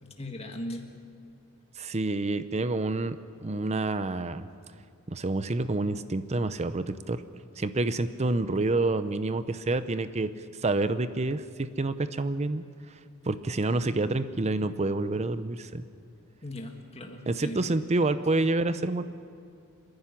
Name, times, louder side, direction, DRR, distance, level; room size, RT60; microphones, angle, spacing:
voice 1, 0.0-0.8 16.4-17.8, left 1 dB, 30° left, 3 dB, 1.7 m, -38 dB
voice 2, 1.8-3.2 3.4-4.5 5.1-7.2 7.6-10.3 10.6-12.6 13.3-15.8 17.3-19.0, right 2 dB, 30° right, 12 dB, 0.6 m, -28 dB
27.5 x 10.5 x 9.9 m, 2.3 s
head